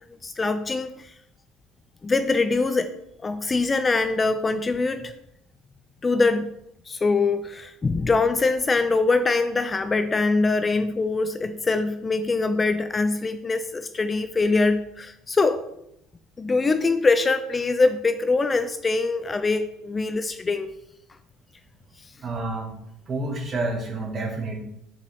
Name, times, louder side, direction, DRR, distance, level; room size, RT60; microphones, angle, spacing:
voice 1, 0.2-1.1 2.0-2.9 3.2-5.1 6.0-6.5 6.9-15.6 16.4-20.7, left 3 dB, 20° left, 10 dB, 0.4 m, -23 dB
voice 2, 22.2-22.7 23.1-24.6, right 2 dB, 35° right, 1 dB, 1.7 m, -29 dB
6.4 x 5.3 x 3.5 m, 0.79 s
cardioid pair, 115°, 0 cm